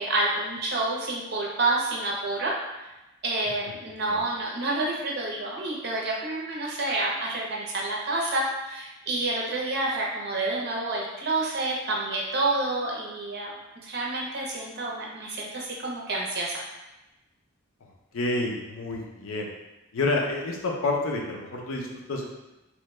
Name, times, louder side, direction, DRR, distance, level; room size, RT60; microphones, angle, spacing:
voice 1, 0.0-2.9 3.2-13.5 13.8-16.6, right 2 dB, 55° right, -3 dB, 0.7 m, -29 dB
voice 2, 18.1-19.5 19.9-22.3, left 2 dB, 80° left, 0 dB, 0.6 m, -29 dB
3.0 x 2.2 x 3.2 m, 1.0 s
head